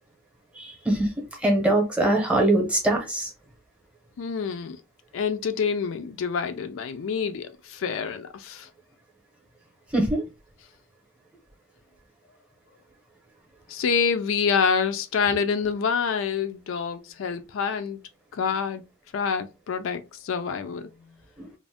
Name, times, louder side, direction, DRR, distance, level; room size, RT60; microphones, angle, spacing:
voice 1, 0.6-1.1 1.4-3.3 9.9-10.2 21.4-21.5, right 1 dB, 5° right, 0.8 m, -22 dB
voice 2, 4.2-4.8 5.1-8.7 13.7-18.0 18.3-18.8 19.1-20.9, left 6 dB, 70° left, 0.4 m, -27 dB
2.5 x 2.1 x 3.3 m
head